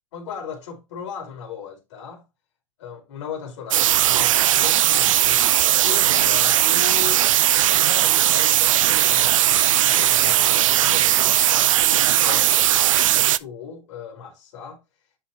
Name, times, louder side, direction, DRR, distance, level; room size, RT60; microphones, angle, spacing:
voice 1, 0.1-2.3 2.8-5.5 5.7-7.3 7.7-9.4 9.8-14.8, left 6 dB, 60° left, 4.2 m, -37 dB
sound 1, 3.7-13.4, right 12 dB, 80° right, 0.5 m, -18 dB
10.5 x 4.4 x 2.7 m
hypercardioid pair, 135°, 17 cm